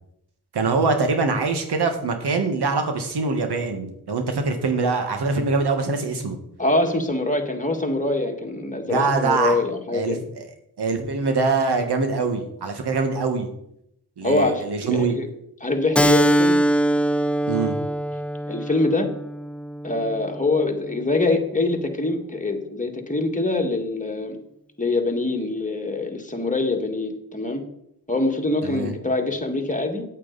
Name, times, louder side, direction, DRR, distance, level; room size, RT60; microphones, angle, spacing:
voice 1, 0.5-6.4 8.9-9.6 9.9-10.5 10.8-13.5 14.2-15.1 17.5-17.8 28.6-28.9, right 4 dB, 75° right, 6 dB, 1.6 m, -23 dB
voice 2, 6.6-10.2 14.2-15.3 15.6-16.6 18.5-19.1 19.8-24.4 24.8-27.6 28.1-30.0, left 2 dB, 20° left, 2 dB, 1.9 m, -24 dB
Keyboard (musical), 15.9-21.1, right 1 dB, 5° left, 0.4 m, -23 dB
8.6 x 8.5 x 4.0 m, 0.77 s
cardioid pair, 45°, 40 cm